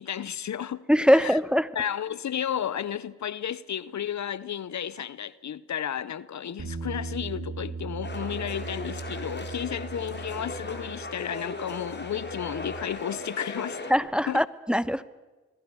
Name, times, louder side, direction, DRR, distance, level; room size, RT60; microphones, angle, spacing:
voice 1, 0.0-0.9 1.2-1.4 1.7-13.8 14.3-14.4, left 9 dB, 65° left, 0.8 m, -33 dB
voice 2, 0.9-1.7 13.9-15.0, equal, 5° right, 1.1 m, -22 dB
Bass guitar, 6.6-12.8, right 4 dB, 55° right, 5.5 m, -39 dB
sound 1, 8.0-13.9, left 2 dB, 35° left, 4.3 m, -38 dB
26.0 x 22.0 x 7.0 m
cardioid pair, 45°, 30 cm